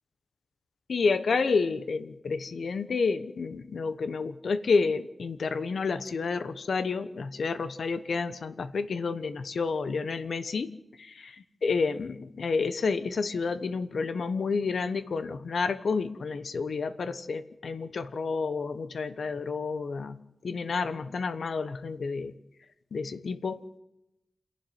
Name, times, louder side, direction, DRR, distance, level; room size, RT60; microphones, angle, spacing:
voice 1, 0.9-10.7 11.0-11.1 11.6-20.2 20.4-22.3 22.9-23.6, left 4 dB, 70° left, 12 dB, 1.1 m, -30 dB
28.0 x 11.5 x 9.3 m, 0.88 s
wide cardioid pair, 150°, 0 cm